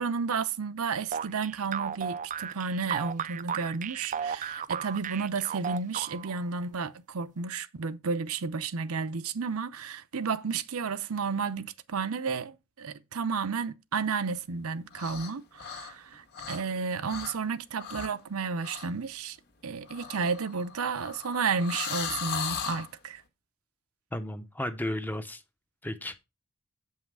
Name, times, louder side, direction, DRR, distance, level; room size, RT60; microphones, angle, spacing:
voice 1, 0.0-19.4 19.6-23.2, right 5 dB, 70° right, 0.6 m, -32 dB
sound 1, 1.1-6.4, right 8 dB, 35° right, 0.3 m, -34 dB
sound 2, 14.9-15.3 15.6-16.8 17.0-17.4 17.8-18.2 18.6-18.9 19.9-22.9, left 6 dB, 45° left, 1.5 m, -37 dB
voice 2, 24.1-25.4 25.8-26.2, left 1 dB, 10° left, 0.6 m, -34 dB
8.4 x 5.6 x 4.7 m
head